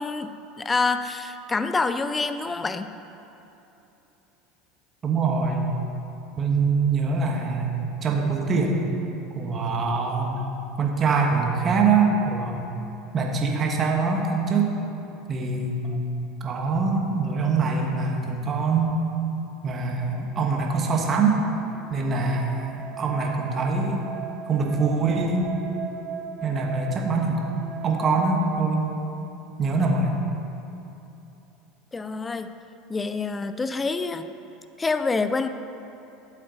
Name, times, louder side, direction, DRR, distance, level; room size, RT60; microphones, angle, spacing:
voice 1, 0.0-2.9 31.9-32.5 32.9-34.3 34.8-35.5, left 3 dB, 20° left, 10 dB, 0.5 m, -27 dB
voice 2, 5.0-5.7 6.4-8.8 9.3-10.4 10.8-12.7 13.1-14.7 15.3-16.0 16.4-18.9 19.6-21.4 21.9-24.0 24.5-25.6 26.4-27.5 27.8-28.9 29.6-30.1, right 4 dB, 35° right, 1 dB, 1.5 m, -24 dB
sound 1, 20.3-28.5, right 6 dB, 5° right, 1.2 m, -38 dB
12.5 x 7.6 x 4.1 m, 3.0 s
hypercardioid pair, 90°, 0 cm